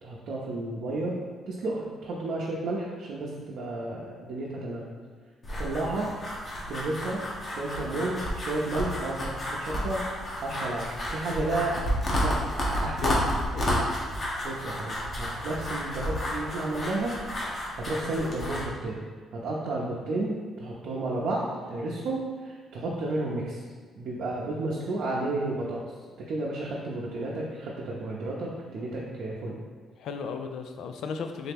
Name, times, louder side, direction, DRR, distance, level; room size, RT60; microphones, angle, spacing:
voice 1, 0.0-1.2 1.5-4.9 5.6-6.1 6.7-7.2 7.5-10.0 10.4-11.8 12.2-12.4 12.8-13.1 14.4-17.1 17.8-19.0 19.3-23.6 24.0-25.8 26.3-29.6, right 2 dB, 75° right, -5 dB, 0.6 m, -32 dB
sound 1, 5.4-18.6, equal, 40° left, 1.0 m, -31 dB
voice 2, 30.0-31.5, left 6 dB, 75° left, 6 dB, 0.3 m, -34 dB
3.8 x 2.8 x 3.6 m, 1.5 s
cardioid pair, 90°, 0 cm